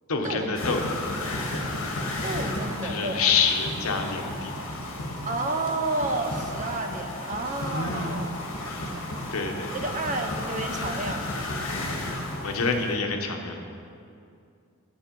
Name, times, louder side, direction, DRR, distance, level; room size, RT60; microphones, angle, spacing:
voice 1, 0.1-0.8 2.8-4.5 7.7-8.1 8.6-9.0 9.3-9.8 11.7-12.0 12.4-13.7, left 5 dB, 85° left, 4 dB, 1.0 m, -27 dB
sound 1, 0.5-12.9, left 1 dB, 65° left, 1.6 m, -33 dB
voice 2, 2.2-3.2 5.2-9.2 9.7-11.3, right 2 dB, 35° right, 5 dB, 0.7 m, -31 dB
10.0 x 7.3 x 5.3 m, 2.5 s
head